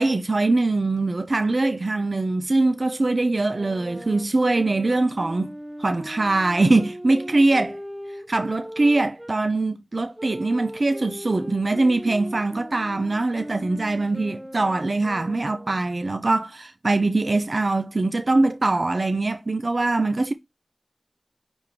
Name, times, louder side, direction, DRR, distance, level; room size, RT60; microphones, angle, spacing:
voice 1, 0.0-5.5 5.8-7.8 8.3-20.3, right 2 dB, 70° right, 0.5 m, -22 dB
Wind instrument woodwind instrument, 3.5-9.4 10.1-15.9, equal, 5° right, 0.9 m, -39 dB
9.6 x 3.5 x 3.2 m
wide cardioid pair, 55°, 0 cm